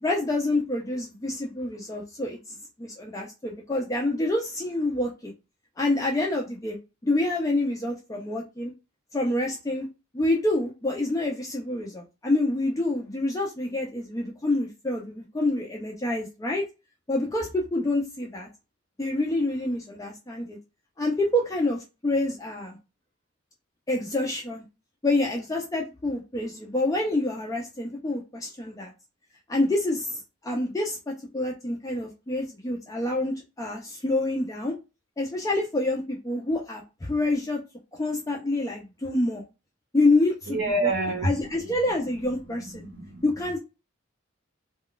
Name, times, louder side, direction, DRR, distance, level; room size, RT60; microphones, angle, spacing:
voice 1, 0.0-5.3 5.8-6.8 7.0-8.7 9.1-9.9 10.1-16.6 17.1-18.5 19.0-20.6 21.0-22.8 23.9-24.6 25.0-28.9 29.5-34.8 35.2-37.6 37.9-39.4 39.9-40.9 41.2-42.9 43.2-43.6, left 2 dB, 15° left, -1 dB, 0.4 m, -27 dB
voice 2, 40.5-41.3 42.8-43.2, right 2 dB, 85° right, -2 dB, 0.7 m, -26 dB
2.2 x 2.2 x 3.7 m, 0.27 s
head